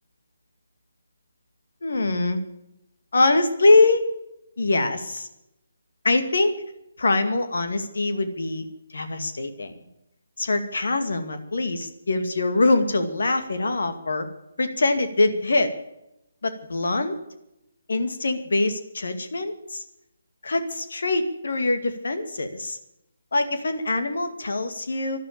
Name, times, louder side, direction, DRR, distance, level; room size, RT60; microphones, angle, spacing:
voice 1, 1.8-2.4 3.1-4.1 4.6-5.3 6.0-6.6 7.0-9.9 10.4-14.3 14.6-15.7 16.4-17.2 17.9-19.8 20.4-22.8 23.3-25.2, left 2 dB, 65° left, 8 dB, 2.2 m, -23 dB
12.0 x 12.0 x 8.8 m, 0.85 s
figure-of-eight pair, 140°, 0 cm